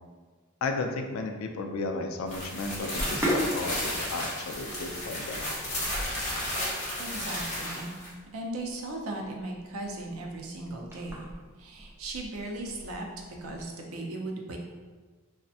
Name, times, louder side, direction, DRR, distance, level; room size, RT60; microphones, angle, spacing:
voice 1, 0.6-5.4, left 3 dB, 70° left, 4 dB, 0.3 m, -34 dB
sound 1, 2.3-8.1, left 1 dB, 35° left, 0.9 m, -33 dB
Sink (filling or washing), 2.8-13.6, equal, 10° right, 0.4 m, -38 dB
voice 2, 7.0-8.0 8.3-11.3 11.6-13.1 13.4-14.6, right 2 dB, 85° right, 1 dB, 0.5 m, -37 dB
3.2 x 2.1 x 2.6 m, 1.4 s
head